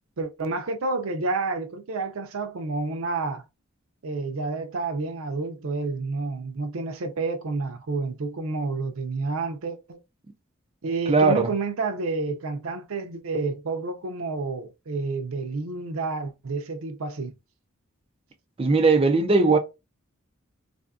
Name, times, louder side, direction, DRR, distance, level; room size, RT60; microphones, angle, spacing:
voice 1, 0.2-3.4 4.0-10.0 10.8-17.3, right 3 dB, 75° right, 0.6 m, -29 dB
voice 2, 11.1-11.5 18.6-19.6, right 3 dB, 25° right, 0.4 m, -19 dB
3.4 x 2.6 x 2.3 m
head